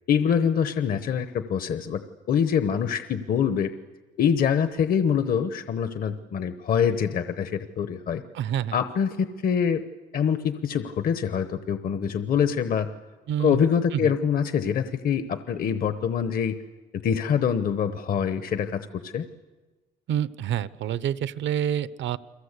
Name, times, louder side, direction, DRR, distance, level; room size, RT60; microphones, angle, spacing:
voice 1, 0.1-3.7 4.2-8.2 8.7-9.8 10.1-12.9 13.4-16.6 16.9-19.2, left 7 dB, 45° left, 10 dB, 0.9 m, -25 dB
voice 2, 8.3-8.8 13.3-13.6 13.9-14.1 20.1-22.2, right 10 dB, 65° right, 16 dB, 0.8 m, -27 dB
30.0 x 23.0 x 8.2 m, 1.2 s
cardioid pair, 170°, 20 cm